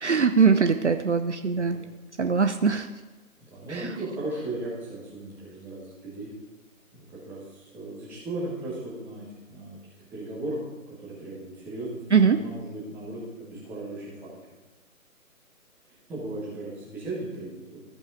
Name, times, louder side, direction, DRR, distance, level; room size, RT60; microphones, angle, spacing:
voice 1, 0.0-1.8 2.2-2.9 3.7-3.8 12.1-12.4, right 5 dB, 50° right, 7 dB, 0.6 m, -21 dB
voice 2, 3.5-6.3 6.9-9.8 10.1-10.6 11.0-14.1 16.1-17.8, right 2 dB, 5° right, -8 dB, 1.3 m, -36 dB
14.0 x 5.5 x 4.9 m, 1.2 s
figure-of-eight pair, 150°, 44 cm